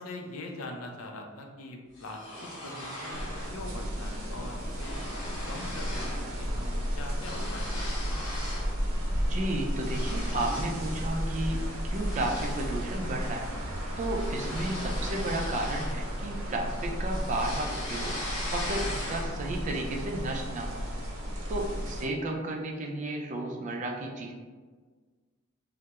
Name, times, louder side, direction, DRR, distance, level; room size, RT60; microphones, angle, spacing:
voice 1, 0.0-3.3 3.5-5.0 5.5-7.9 21.8-21.9, left 2 dB, 90° left, 2 dB, 0.4 m, -42 dB
sound 1, 1.9-3.6 3.9-4.2 4.4-6.3 6.6-8.7 9.2-10.8 11.2-11.5 11.9-16.4 16.8-19.5, left 1 dB, 65° left, 1.0 m, -40 dB
sound 2, 3.1-22.1, equal, 85° right, 0.5 m, -33 dB
voice 2, 9.3-13.5 14.0-18.1 18.5-20.9 21.5-24.3, right 1 dB, 35° right, 1 dB, 0.3 m, -33 dB
2.2 x 2.0 x 2.8 m, 1.5 s
head